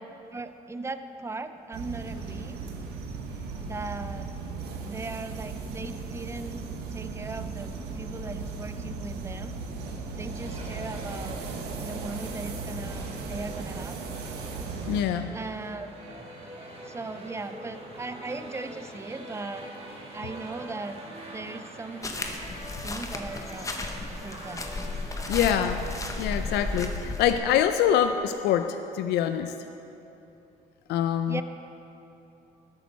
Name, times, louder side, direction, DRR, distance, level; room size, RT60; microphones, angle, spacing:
voice 1, 0.3-2.6 3.5-4.3 4.8-6.6 6.9-9.5 10.1-11.4 11.8-14.1 15.3-15.9 16.8-19.7 20.1-21.0 21.3-22.2 22.8-23.8 24.2-24.6 31.3-31.4, right 3 dB, 15° right, 10 dB, 0.5 m, -38 dB
sound 1, 1.7-15.0, right 4 dB, 75° right, 1.2 m, -36 dB
sound 2, 10.4-26.9, right 1 dB, 35° right, 2.1 m, -44 dB
voice 2, 14.9-15.3 25.3-25.9 26.2-29.5 30.9-31.4, left 9 dB, 80° left, 9 dB, 0.5 m, -25 dB
sound 3, 22.0-27.4, left 2 dB, 20° left, 0.9 m, -34 dB
13.5 x 8.6 x 4.2 m, 2.9 s
cardioid pair, 110°, 17 cm